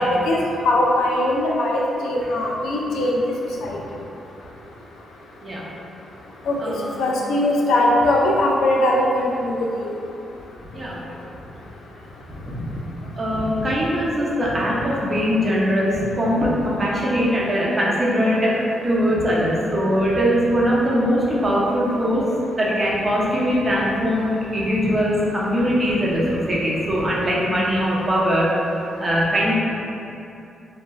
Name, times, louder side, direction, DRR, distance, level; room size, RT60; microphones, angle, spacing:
voice 1, 0.0-3.2 3.6-3.8 6.5-6.6 7.0-9.6 9.8-9.9, left 1 dB, 80° left, -2 dB, 0.4 m, -20 dB
voice 2, 6.6-6.9 10.7-11.0 12.4-12.7 13.2-18.5 18.8-22.2 22.5-28.5 29.0-29.5, equal, 30° right, -6 dB, 0.7 m, -21 dB
2.4 x 2.2 x 3.1 m, 2.7 s
supercardioid pair, 60°, 0 cm